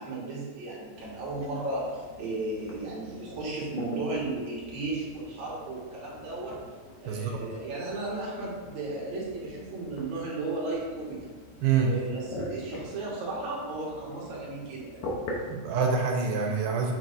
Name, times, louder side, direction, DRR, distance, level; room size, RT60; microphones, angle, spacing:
voice 1, 0.0-6.6 7.0-11.3 11.8-15.0, right 2 dB, 45° right, -5 dB, 1.7 m, -35 dB
sound 1, 0.9-15.6, left 1 dB, 75° left, 2.6 m, -43 dB
voice 2, 7.1-7.4 11.6-11.9 15.5-16.9, right 5 dB, 85° right, 2 dB, 2.5 m, -26 dB
6.7 x 6.0 x 2.6 m, 1.4 s
omnidirectional pair, 4.3 m